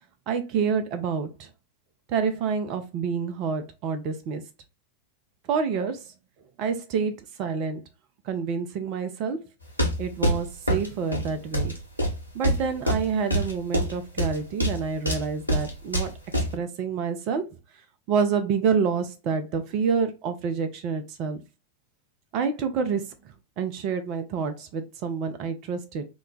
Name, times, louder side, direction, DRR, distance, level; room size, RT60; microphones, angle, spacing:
voice 1, 0.3-1.5 2.1-4.4 5.5-6.0 6.6-7.8 8.3-9.4 10.0-11.8 12.3-16.1 16.5-17.4 18.1-21.4 22.3-23.1 23.6-26.1, right 6 dB, 40° right, 0.5 m, -28 dB
sound 1, 9.6-16.6, equal, 90° right, 0.9 m, -26 dB
3.0 x 2.2 x 3.7 m
figure-of-eight pair, 90°, 0 cm